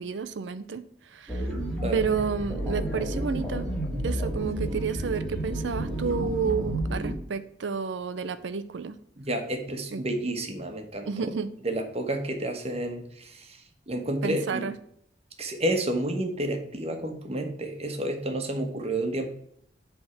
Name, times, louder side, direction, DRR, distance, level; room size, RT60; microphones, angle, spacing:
voice 1, 0.0-1.5 1.9-3.7 3.9-9.0 9.9-10.0 11.1-11.5 14.2-14.7, right 5 dB, 90° right, 12 dB, 0.5 m, -31 dB
sound 1, 1.3-7.1, right 1 dB, 5° left, 1.9 m, -31 dB
voice 2, 9.2-11.3 11.6-14.7 15.4-19.3, right 1 dB, 35° right, 4 dB, 1.2 m, -30 dB
8.0 x 3.6 x 5.7 m, 0.70 s
head